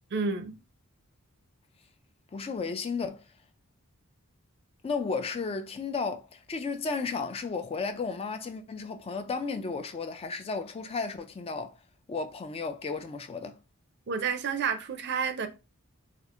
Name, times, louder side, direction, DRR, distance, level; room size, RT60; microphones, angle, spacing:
voice 1, 0.1-0.6 14.1-15.5, right 5 dB, 50° right, 0.5 m, -30 dB
voice 2, 2.3-3.2 4.8-11.8 12.1-13.6, left 4 dB, 25° left, 0.3 m, -33 dB
4.3 x 2.4 x 2.4 m
head